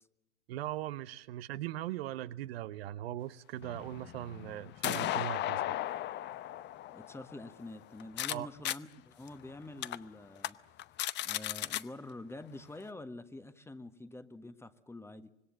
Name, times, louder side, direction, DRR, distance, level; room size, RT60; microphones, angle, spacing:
voice 1, 0.5-5.7 8.3-8.5, right 13 dB, 60° right, 14 dB, 0.9 m, -39 dB
sound 1, 3.6-8.3 8.6-8.8 9.3-9.4 9.8-10.0 10.4-10.5 10.8-11.8, left 14 dB, 30° left, 0.8 m, -36 dB
voice 2, 6.9-10.6 11.2-15.3, left 2 dB, 5° left, 11 dB, 1.3 m, -47 dB
25.5 x 21.5 x 7.6 m, 0.91 s
figure-of-eight pair, 90°, 35 cm